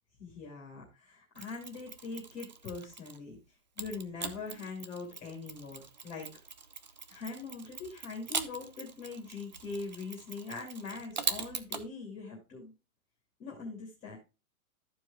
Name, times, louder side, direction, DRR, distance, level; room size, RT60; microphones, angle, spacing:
voice 1, 0.2-3.4 3.8-6.3 7.1-12.7 13.4-14.2, left 4 dB, 15° left, -3 dB, 2.4 m, -42 dB
Mechanisms, 1.3-3.3 3.8-11.9, right 5 dB, 35° right, 0.4 m, -41 dB
13.5 x 4.7 x 3.4 m, 0.29 s
hypercardioid pair, 175°, 44 cm